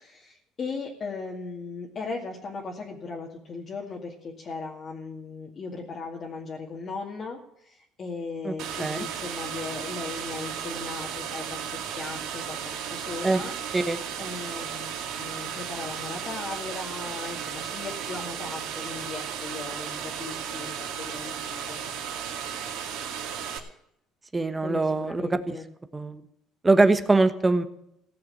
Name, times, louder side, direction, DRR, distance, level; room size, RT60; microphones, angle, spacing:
voice 1, 0.0-13.5 14.2-21.8 24.6-25.7, left 4 dB, 40° left, -2 dB, 2.3 m, -38 dB
sound 1, 8.6-23.6, right 8 dB, 70° right, 2.3 m, -35 dB
voice 2, 24.3-25.6 25.9-26.2 26.6-27.6, right 3 dB, 15° right, 9 dB, 1.2 m, -22 dB
16.5 x 6.9 x 8.7 m, 0.75 s
cardioid pair, 115°, 0 cm